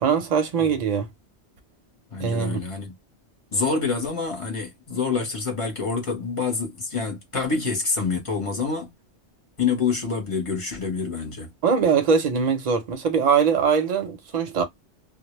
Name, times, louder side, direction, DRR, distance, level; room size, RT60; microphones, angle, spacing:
voice 1, 0.0-1.1 2.2-2.6 11.6-14.6, right 6 dB, 45° right, 0.6 m, -22 dB
voice 2, 2.1-2.9 3.5-8.9 9.6-11.5, left 4 dB, 30° left, 0.8 m, -27 dB
2.1 x 2.0 x 2.9 m
omnidirectional pair, 1.2 m